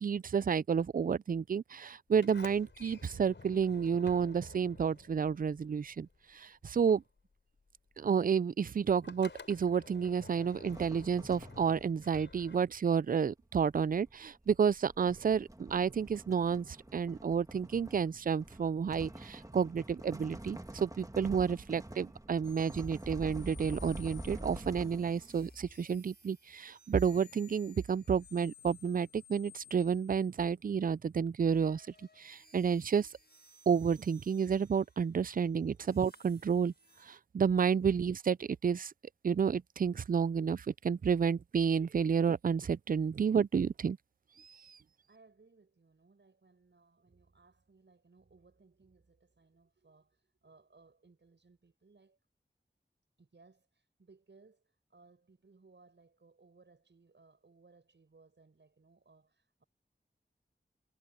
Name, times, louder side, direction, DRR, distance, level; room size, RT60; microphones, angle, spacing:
voice 1, 0.0-6.1 6.3-7.0 8.0-31.8 32.2-33.1 33.7-36.7 37.1-38.9 39.2-44.0, right 6 dB, 50° right, 0.4 m, -30 dB
Sliding door, 2.1-6.4 6.7-13.0, left 4 dB, 85° left, 4.4 m, -52 dB
sound 1, 10.7-12.0 13.2-25.4, right 1 dB, 20° right, 1.6 m, -47 dB
sound 2, 22.4-30.7 31.4-37.2, left 5 dB, 60° left, 6.2 m, -59 dB
voice 2, 44.7-52.2 53.2-59.6, right 3 dB, 75° right, 6.9 m, -64 dB
wide cardioid pair, 40°, 18 cm